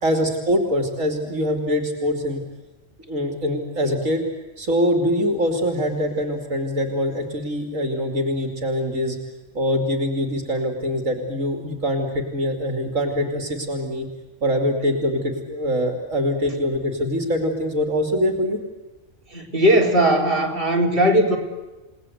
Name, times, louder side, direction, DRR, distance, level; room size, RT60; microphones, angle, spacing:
voice 1, 0.0-2.4 3.1-4.2 4.6-9.2 9.5-14.1 14.4-18.6, equal, 70° right, 4 dB, 3.4 m, -23 dB
voice 2, 19.3-21.4, right 1 dB, 40° right, -1 dB, 4.1 m, -18 dB
29.5 x 19.5 x 8.1 m, 1.1 s
omnidirectional pair, 1.4 m